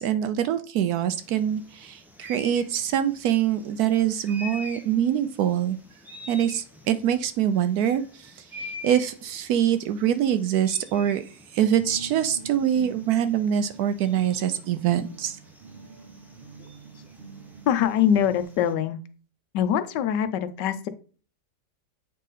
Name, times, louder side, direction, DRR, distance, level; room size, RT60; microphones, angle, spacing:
voice 1, 0.0-5.8 6.3-15.4, right 10 dB, 70° right, 11 dB, 1.0 m, -24 dB
sound 1, 1.1-18.7, left 2 dB, 5° right, 0.4 m, -46 dB
sound 2, 11.8-18.4, right 4 dB, 45° right, 0.7 m, -44 dB
voice 2, 16.6-17.0 17.7-19.0 19.5-20.9, left 9 dB, 80° left, 11 dB, 1.3 m, -24 dB
8.2 x 3.7 x 4.0 m, 0.39 s
omnidirectional pair, 1.8 m